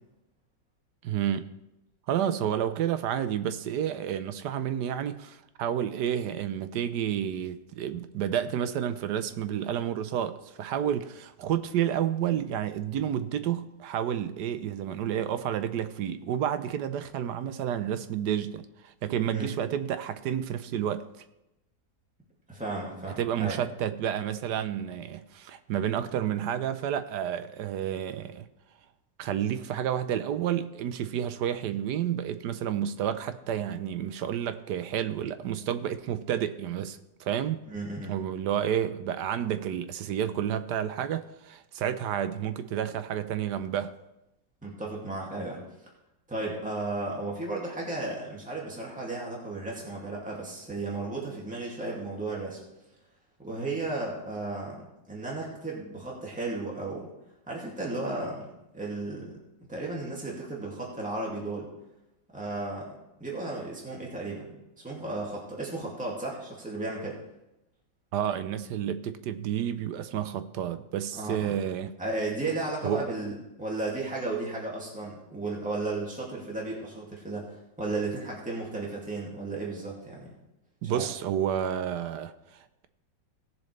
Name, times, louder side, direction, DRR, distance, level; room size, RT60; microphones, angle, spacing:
voice 1, 1.0-1.5 2.1-21.2 23.2-28.4 29.2-37.6 38.1-44.0 68.1-72.0 72.8-73.1 80.8-82.9, right 10 dB, 75° right, 1.2 m, -30 dB
voice 2, 22.5-23.6 37.7-38.1 44.6-45.6 46.3-52.6 53.4-57.1 57.5-59.3 59.7-61.7 62.3-64.6 64.8-67.2 71.1-71.6 72.0-80.3 80.8-81.1, right 2 dB, 5° right, 2.1 m, -34 dB
18.0 x 7.2 x 3.3 m
omnidirectional pair, 1.9 m